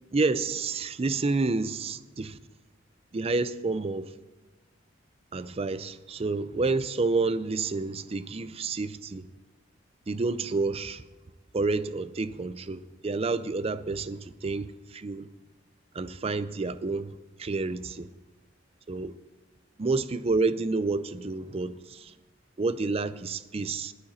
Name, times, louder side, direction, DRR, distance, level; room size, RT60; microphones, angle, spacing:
voice 1, 0.1-2.4 3.1-4.1 5.3-9.3 10.1-11.0 11.5-15.3 15.9-17.1 17.4-18.1 18.9-19.1 19.8-22.1 22.6-23.9, right 3 dB, 30° right, 0.4 m, -29 dB
14.0 x 11.5 x 4.2 m
head